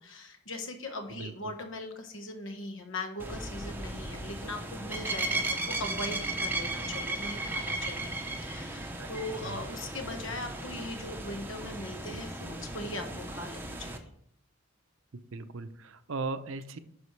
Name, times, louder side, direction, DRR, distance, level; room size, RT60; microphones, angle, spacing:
voice 1, 0.0-8.1 8.4-14.1, left 2 dB, 65° left, 5 dB, 1.3 m, -40 dB
sound 1, 3.2-14.0, right 2 dB, 10° right, 0.7 m, -36 dB
voice 2, 15.3-16.8, right 3 dB, 70° right, 11 dB, 0.7 m, -37 dB
9.4 x 6.3 x 3.2 m, 0.69 s
head